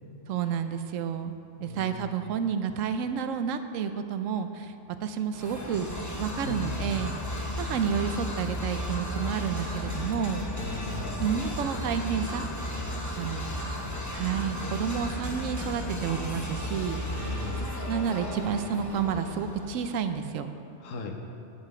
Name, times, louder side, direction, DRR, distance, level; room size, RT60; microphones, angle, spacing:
voice 1, 0.3-1.3 1.6-4.7 5.0-5.9 6.2-7.1 7.6-10.4 10.7-10.8 11.2-12.4 13.1-13.4 14.1-17.4 17.9-20.5, right 7 dB, 85° right, 9 dB, 1.0 m, -30 dB
voice 2, 1.6-2.2 6.4-6.9 10.5-11.2 13.1-14.0 17.1-17.7 20.8-21.2, left 3 dB, 85° left, 3 dB, 1.3 m, -39 dB
sound 1, 5.3-20.0, left 1 dB, 15° left, 0.7 m, -34 dB
9.8 x 7.6 x 4.9 m, 2.8 s
omnidirectional pair, 1.3 m